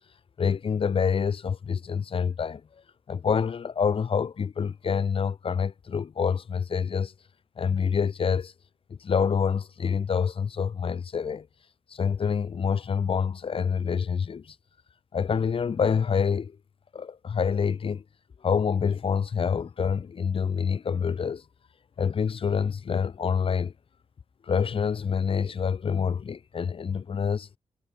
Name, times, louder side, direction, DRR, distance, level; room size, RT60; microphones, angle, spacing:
voice 1, 0.4-2.6 3.1-7.1 7.6-8.5 9.0-11.5 11.9-14.4 15.1-16.5 16.9-18.0 18.4-21.4 22.0-23.7 24.5-27.5, left 6 dB, 50° left, 0.8 m, -26 dB
wide cardioid pair, 110°, 12 cm